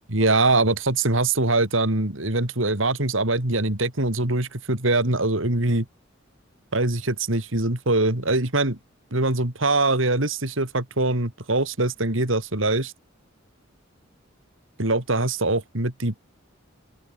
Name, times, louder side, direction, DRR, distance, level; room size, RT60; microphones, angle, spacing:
voice 1, 0.1-5.9 6.7-8.8 9.1-12.9 14.8-16.2, right 2 dB, 75° right, 3.6 m, -23 dB
open air
head